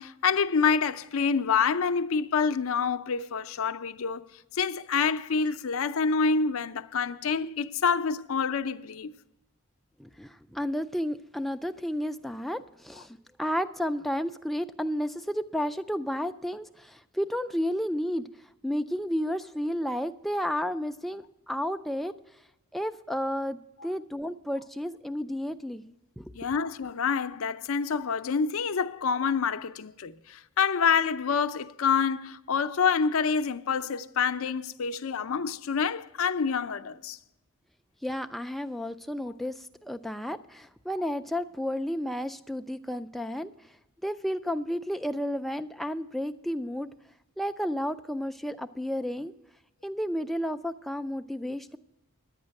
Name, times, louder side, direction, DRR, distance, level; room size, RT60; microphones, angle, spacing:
voice 1, 0.0-4.2 4.5-9.1 26.3-37.2, left 6 dB, 70° left, 0.5 m, -27 dB
voice 2, 10.0-18.3 18.6-22.1 22.7-26.3 38.0-43.5 44.0-46.9 47.4-49.3 49.8-51.8, equal, ahead, 0.3 m, -32 dB
11.0 x 8.9 x 6.4 m
head